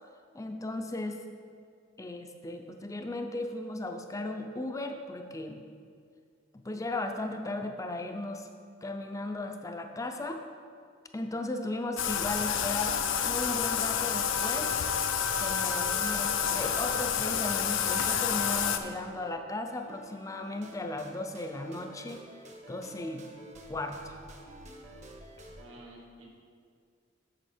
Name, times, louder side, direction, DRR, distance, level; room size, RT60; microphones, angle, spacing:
voice 1, 0.3-1.2 2.0-5.6 6.6-8.5 8.8-10.4 11.1-13.0 13.2-14.8 15.4-22.2 22.7-23.3 23.7-24.2, left 2 dB, 15° left, 5 dB, 0.4 m, -36 dB
Bathtub (filling or washing), 12.0-18.8, left 8 dB, 70° left, 0.5 m, -29 dB
sound 1, 15.3-19.3 19.7-25.6, right 1 dB, 35° right, 0.8 m, -51 dB
voice 2, 25.6-26.3, right 1 dB, 80° right, -1 dB, 1.6 m, -50 dB
8.0 x 6.8 x 4.3 m, 2.2 s
head